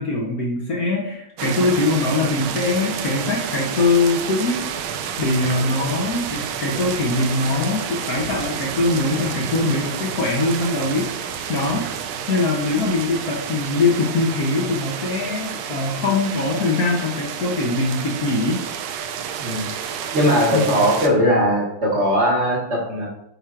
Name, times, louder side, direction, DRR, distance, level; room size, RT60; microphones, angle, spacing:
voice 1, 0.0-4.6 5.2-11.9 12.3-18.6 20.5-20.9, left 3 dB, 60° left, -2 dB, 1.1 m, -22 dB
sound 1, 1.4-21.1, right 8 dB, 85° right, 1.4 m, -30 dB
voice 2, 20.1-23.1, equal, 40° right, -3 dB, 1.3 m, -19 dB
9.1 x 4.3 x 2.4 m, 0.79 s
omnidirectional pair, 2.2 m